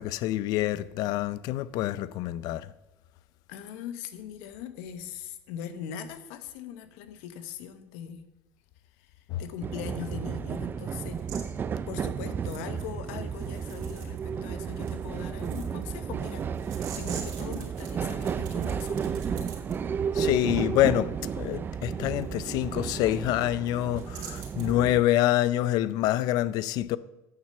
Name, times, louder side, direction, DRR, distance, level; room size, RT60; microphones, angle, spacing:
voice 1, 0.0-2.7 9.3-9.4 20.1-27.0, left 14 dB, 60° left, 0.4 m, -26 dB
voice 2, 3.5-8.3 9.0-11.3 11.9-19.5, left 9 dB, 80° left, 1.0 m, -41 dB
sound 1, 9.6-25.0, right 7 dB, 30° right, 0.4 m, -33 dB
sound 2, 11.1-11.4 12.4-14.3 14.6-19.7 22.2-22.3 22.7-22.8 23.1-23.5 23.8-24.8, right 7 dB, 65° right, 2.8 m, -46 dB
8.9 x 6.6 x 6.7 m
supercardioid pair, 115°, 7 cm